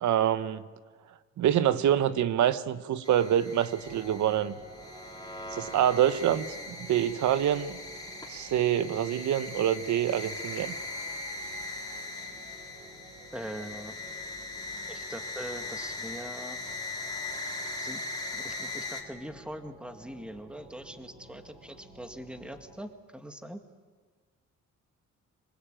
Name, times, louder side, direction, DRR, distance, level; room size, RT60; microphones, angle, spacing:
voice 1, 0.0-0.6 1.4-4.5 5.5-7.8 8.3-10.7, right 10 dB, 70° right, 13 dB, 1.2 m, -26 dB
sound 1, 3.0-19.0, left 2 dB, 15° left, 4.0 m, -40 dB
sound 2, 3.8-22.8, right 2 dB, 25° right, 7.3 m, -52 dB
voice 2, 13.3-13.9 14.9-16.6 17.8-23.6, equal, 5° right, 7 dB, 2.1 m, -42 dB
27.0 x 19.5 x 9.1 m, 1.5 s
cardioid pair, 90°, 30 cm